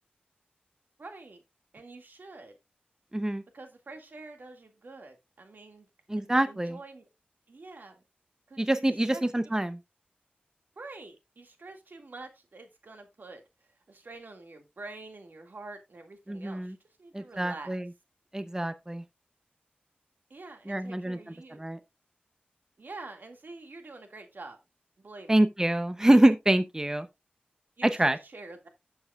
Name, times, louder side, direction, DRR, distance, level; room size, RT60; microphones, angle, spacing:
voice 1, 1.0-1.4 1.7-2.5 3.5-5.9 6.2-7.1 7.5-8.0 8.5-9.3 10.8-13.4 13.9-17.8 20.3-21.6 22.8-24.6 25.0-25.5 27.8-28.7, right 3 dB, 75° right, 2.0 m, -46 dB
voice 2, 3.1-3.4 6.1-6.8 8.6-9.8 16.3-16.7 17.1-17.8 18.3-19.0 20.7-21.2 21.6-21.8 25.3-27.1 27.8-28.2, right 1 dB, 20° right, 0.7 m, -25 dB
12.0 x 7.1 x 2.3 m
wide cardioid pair, 65°, 3 cm